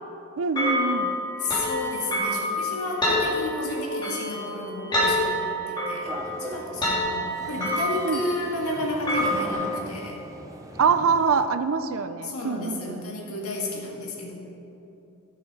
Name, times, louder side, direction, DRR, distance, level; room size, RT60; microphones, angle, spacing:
voice 1, 0.4-1.2 8.0-8.2 10.8-13.1, right 5 dB, 70° right, 11 dB, 0.5 m, -24 dB
sound 1, 0.6-9.5, left 1 dB, 20° left, 2.5 m, -27 dB
voice 2, 1.4-10.2 12.2-14.4, left 2 dB, 85° left, -1 dB, 1.9 m, -32 dB
sound 2, 6.0-11.5, right 1 dB, 15° right, 0.6 m, -40 dB
12.5 x 6.4 x 5.3 m, 3.0 s
head